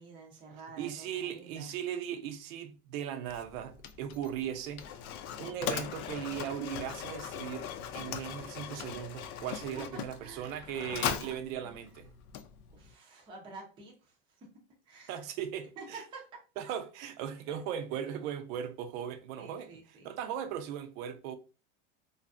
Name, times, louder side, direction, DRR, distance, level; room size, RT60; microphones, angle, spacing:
voice 1, 0.0-1.7 10.2-10.7 11.2-11.3 11.6-11.8 12.7-14.5 14.9-15.2 15.8-16.3 17.5-17.6 19.4-20.1, right 3 dB, 15° right, 0.4 m, -49 dB
voice 2, 0.8-4.9 5.4-7.7 7.9-12.1 15.1-16.0 16.6-21.4, right 9 dB, 70° right, 0.6 m, -38 dB
Mechanisms, 3.2-12.9, left 9 dB, 85° left, 0.5 m, -40 dB
2.5 x 2.4 x 2.4 m
supercardioid pair, 145°, 42 cm